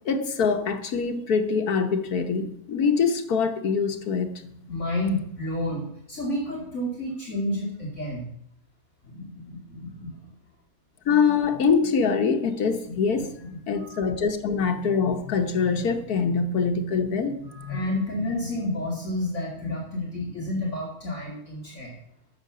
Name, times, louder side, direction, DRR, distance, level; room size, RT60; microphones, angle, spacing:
voice 1, 0.0-4.3 11.1-13.3 13.7-17.8, left 5 dB, 75° left, 1.6 m, -24 dB
voice 2, 4.4-8.3 9.0-10.2 12.9-13.5 13.8-14.1 17.4-21.9, left 1 dB, 50° left, 2.8 m, -31 dB
12.5 x 6.5 x 6.8 m
omnidirectional pair, 1.6 m